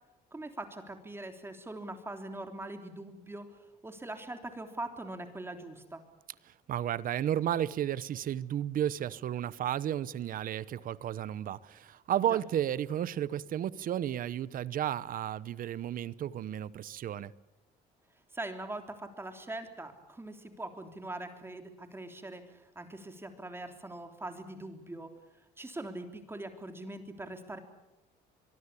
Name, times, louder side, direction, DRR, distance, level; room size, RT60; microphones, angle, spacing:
voice 1, 0.3-6.0 12.2-12.4 18.3-25.1 25.4-27.6, right 2 dB, 15° right, 3.4 m, -42 dB
voice 2, 6.7-17.3, right 11 dB, 55° right, 0.9 m, -33 dB
24.5 x 23.5 x 8.4 m
cardioid pair, 110°, 17 cm